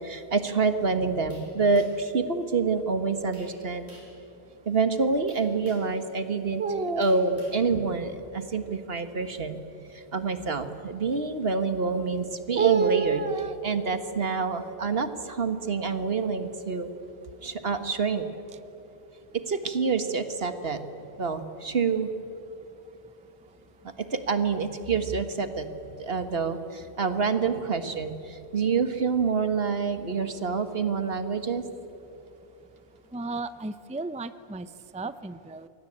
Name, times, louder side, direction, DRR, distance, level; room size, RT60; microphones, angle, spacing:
voice 1, 0.0-3.9 4.7-9.6 9.9-16.9 17.4-18.3 19.5-20.8 21.2-22.1 24.1-25.7 26.0-31.6, right 4 dB, 65° right, 9 dB, 1.8 m, -27 dB
sound 1, 1.3-2.1 3.3-3.6 3.9-4.2 5.3-6.0 7.0-7.6, equal, 90° right, 6.5 m, -52 dB
voice 2, 33.1-35.7, right 3 dB, 10° right, 13 dB, 0.6 m, -35 dB
28.5 x 23.0 x 8.8 m, 2.8 s
omnidirectional pair, 1.1 m